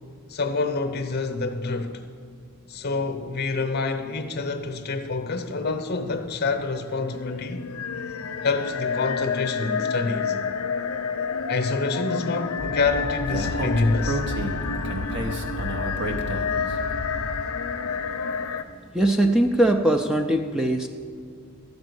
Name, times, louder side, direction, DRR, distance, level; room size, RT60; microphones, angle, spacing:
voice 1, 0.3-2.1 2.7-7.7 8.4-10.4 11.5-14.2, left 3 dB, 50° left, 0.7 m, -27 dB
sound 1, 6.0-18.6, left 5 dB, 80° left, 0.5 m, -30 dB
Speech, 12.6-17.5, equal, 55° right, 1.0 m, -31 dB
voice 2, 18.9-20.9, right 1 dB, 5° right, 0.4 m, -21 dB
12.5 x 5.2 x 8.1 m
head